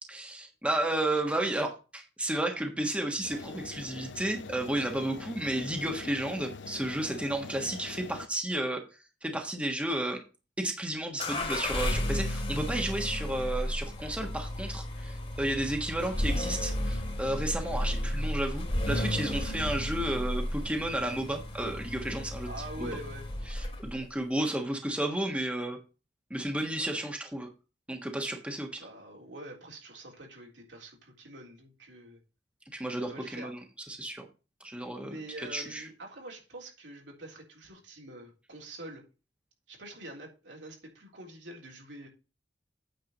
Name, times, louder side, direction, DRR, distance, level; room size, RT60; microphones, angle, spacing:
voice 1, 0.1-1.7 2.2-8.8 9.2-10.2 10.6-22.5 23.5-25.8 26.3-27.5 27.9-28.9 32.7-33.6 33.9-34.3 34.6-35.2 35.5-35.8, right 1 dB, 5° right, 1.4 m, -32 dB
voice 2, 1.1-1.7 22.5-23.3 28.8-32.2 32.9-33.5 34.9-39.0 39.7-42.1, right 1 dB, 75° right, 3.7 m, -45 dB
sound 1, 3.2-8.3, left 4 dB, 75° left, 0.7 m, -44 dB
sound 2, 11.2-24.0, left 1 dB, 35° left, 2.2 m, -33 dB
9.0 x 4.6 x 6.6 m
head